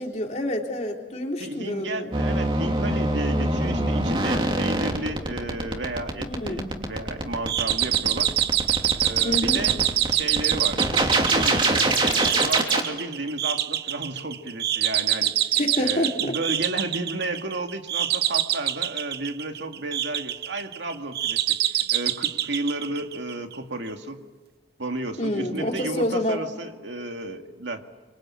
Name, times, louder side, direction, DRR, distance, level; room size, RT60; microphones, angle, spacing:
voice 1, 0.0-2.1 6.2-6.7 9.2-9.6 15.6-16.4 25.2-26.4, left 1 dB, 40° left, 1 dB, 3.5 m, -27 dB
voice 2, 1.4-8.3 9.0-9.8 10.1-15.4 15.8-24.2 24.8-27.8, right 2 dB, 85° right, 5 dB, 2.3 m, -33 dB
sound 1, 2.1-12.8, right 2 dB, 30° right, 2.9 m, -23 dB
Canary doorbell, 7.5-23.6, right 12 dB, 60° right, 0.8 m, -26 dB
26.5 x 25.5 x 8.7 m, 1.2 s
head